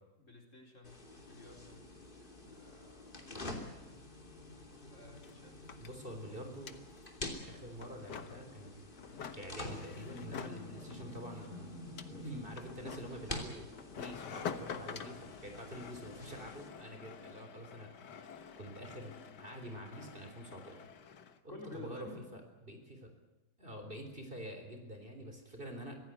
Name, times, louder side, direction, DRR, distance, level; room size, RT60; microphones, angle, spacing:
voice 1, 0.2-1.8 2.4-3.9 4.7-5.6 21.5-22.2, left 2 dB, 45° left, 2 dB, 4.3 m, -52 dB
sound 1, 0.8-16.7, left 2 dB, 30° left, 3.2 m, -48 dB
sound 2, 4.5-4.6 4.8-21.4, left 7 dB, 75° left, 1.9 m, -48 dB
voice 2, 5.8-6.8 7.5-8.7 9.3-11.7 12.1-13.7 14.0-17.9 18.2-20.8 21.4-23.1 23.6-26.0, equal, 30° right, 5 dB, 3.9 m, -47 dB
25.0 x 16.5 x 9.2 m, 1.0 s
omnidirectional pair, 1.9 m